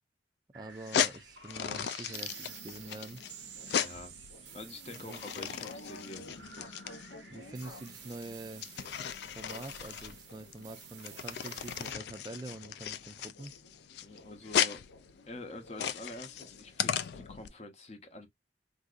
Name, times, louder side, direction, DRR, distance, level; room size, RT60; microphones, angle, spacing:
voice 1, 0.5-3.2 5.0-5.6 7.3-8.6 9.3-13.5, right 2 dB, 20° right, 0.4 m, -45 dB
sound 1, 0.5-11.9, right 9 dB, 70° right, 0.6 m, -51 dB
sound 2, 0.7-17.5, left 9 dB, 60° left, 0.3 m, -36 dB
sound 3, 2.1-17.5, left 2 dB, 90° left, 0.7 m, -54 dB
voice 2, 3.7-4.2 4.5-6.8 14.0-14.9 15.3-18.3, left 2 dB, 35° left, 0.7 m, -47 dB
3.6 x 2.6 x 2.4 m
head